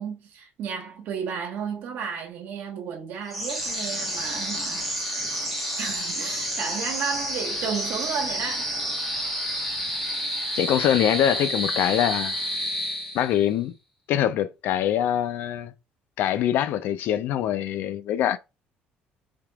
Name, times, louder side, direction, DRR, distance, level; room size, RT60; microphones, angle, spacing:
voice 1, 0.0-4.9 5.8-8.7, right 7 dB, 70° right, 1.1 m, -33 dB
sound 1, 3.3-13.5, equal, ahead, 1.2 m, -29 dB
voice 2, 10.5-12.3 13.1-13.7 14.1-15.7 16.2-18.4, left 11 dB, 65° left, 0.4 m, -24 dB
3.4 x 2.9 x 2.3 m
cardioid pair, 150°, 4 cm